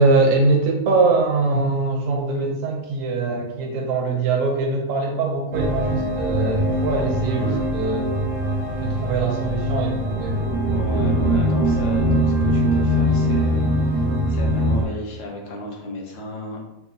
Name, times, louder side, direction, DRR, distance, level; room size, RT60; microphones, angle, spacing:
voice 1, 0.0-8.2 8.8-10.4, right 3 dB, 75° right, 2 dB, 1.0 m, -22 dB
sound 1, 5.5-14.8, equal, 90° right, 0.3 m, -22 dB
voice 2, 7.3-7.7 10.6-16.7, left 1 dB, 70° left, 0 dB, 1.2 m, -34 dB
4.3 x 2.3 x 2.7 m, 0.88 s
omnidirectional pair, 1.4 m